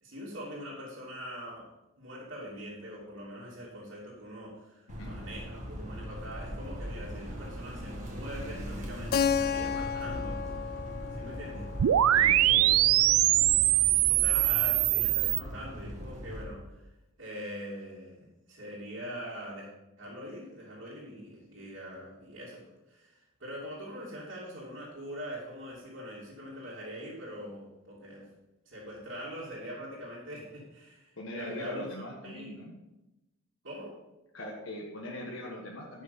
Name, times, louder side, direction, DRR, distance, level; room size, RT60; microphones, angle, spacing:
voice 1, 0.0-1.7 2.0-10.4 11.1-11.8 12.5-13.2 14.1-16.8 17.2-19.7 20.0-28.3 28.6-32.6 33.6-33.9, equal, 60° right, -8 dB, 2.8 m, -43 dB
sound 1, 4.9-16.4, equal, 35° right, 1.9 m, -40 dB
Keyboard (musical), 9.1-13.7, left 7 dB, 45° left, 0.4 m, -33 dB
sound 2, 11.8-15.4, right 14 dB, 90° right, 0.3 m, -23 dB
voice 2, 12.1-12.7 31.2-32.8 34.3-36.0, left 1 dB, 65° left, -3 dB, 1.6 m, -41 dB
11.0 x 6.4 x 5.4 m, 1.0 s
head